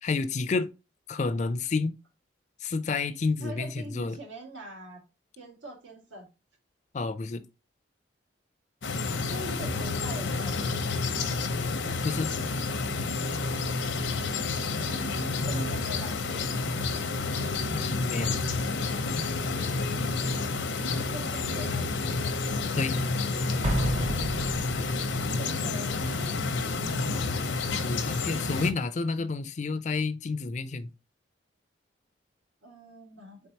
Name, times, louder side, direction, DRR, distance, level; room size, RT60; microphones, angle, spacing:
voice 1, 0.0-0.7 1.1-1.9 2.6-4.2 6.9-7.4 12.0-12.3 17.7-18.4 22.8-23.0 27.7-30.9, left 4 dB, 40° left, 0.4 m, -30 dB
voice 2, 3.4-5.0 5.4-6.3 9.3-10.9 14.8-16.5 21.1-22.2 25.4-26.4 32.6-33.4, right 1 dB, 85° right, 1.9 m, -43 dB
sound 1, 8.8-28.7, left 3 dB, 80° left, 0.7 m, -29 dB
Explosion, 23.6-25.3, equal, 35° right, 0.7 m, -30 dB
4.5 x 3.7 x 2.8 m
head